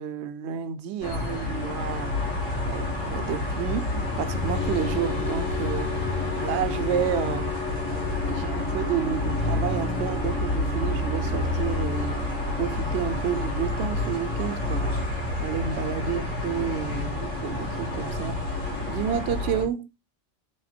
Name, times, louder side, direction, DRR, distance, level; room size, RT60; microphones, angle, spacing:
voice 1, 0.0-2.1 2.7-5.9 6.4-7.5 7.9-8.0 8.3-12.2 12.6-15.0 15.4-18.4 18.9-19.9, right 8 dB, 70° right, 0.8 m, -30 dB
sound 1, 1.0-19.6, left 2 dB, 90° left, 1.8 m, -29 dB
sound 2, 4.5-12.8, left 4 dB, 70° left, 1.3 m, -37 dB
3.6 x 3.4 x 4.2 m
omnidirectional pair, 1.3 m